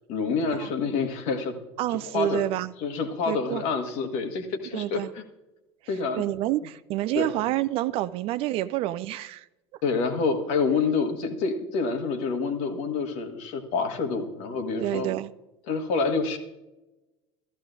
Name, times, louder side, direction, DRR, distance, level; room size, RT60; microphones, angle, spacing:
voice 1, 0.1-1.5 1.9-2.4 2.8-5.2 5.9-6.2 7.1-7.3 9.8-15.1 15.7-16.4, left 4 dB, 50° left, 1.5 m, -27 dB
voice 2, 1.8-2.7 3.3-3.6 4.7-5.1 6.2-9.5 14.8-15.3, right 14 dB, 40° right, 0.4 m, -28 dB
14.0 x 14.0 x 2.6 m
figure-of-eight pair, 70°, 14 cm